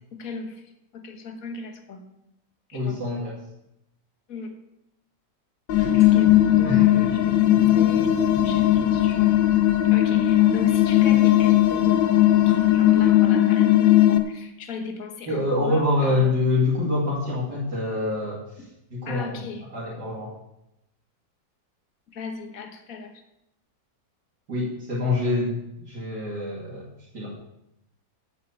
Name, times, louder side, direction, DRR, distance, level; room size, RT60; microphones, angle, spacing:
voice 1, 0.2-2.1 2.7-3.0 4.3-4.6 5.8-9.3 9.9-16.4 19.0-19.7 22.1-23.2, left 4 dB, 50° left, 5 dB, 1.8 m, -38 dB
voice 2, 2.7-3.4 6.6-7.1 15.3-18.4 18.9-19.4 19.7-20.3 24.5-25.6 25.8-26.8 27.1-27.3, left 2 dB, 60° right, -6 dB, 3.1 m, -25 dB
sound 1, 5.7-14.2, left 13 dB, 85° left, 1.6 m, -18 dB
sound 2, 5.7-13.1, left 2 dB, 10° left, 3.1 m, -40 dB
8.5 x 8.3 x 8.3 m, 0.86 s
omnidirectional pair, 2.0 m